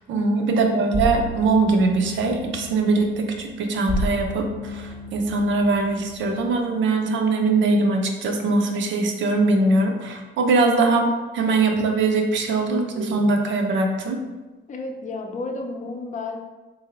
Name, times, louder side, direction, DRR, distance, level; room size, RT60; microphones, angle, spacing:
voice 1, 0.1-11.1 11.3-14.2, right 3 dB, 70° right, 3 dB, 0.6 m, -21 dB
sound 1, 0.9-6.6, equal, 25° right, 0.5 m, -32 dB
voice 2, 14.7-16.4, left 3 dB, 40° left, 4 dB, 0.5 m, -32 dB
3.8 x 2.6 x 2.9 m, 1.2 s
cardioid pair, 90°, 20 cm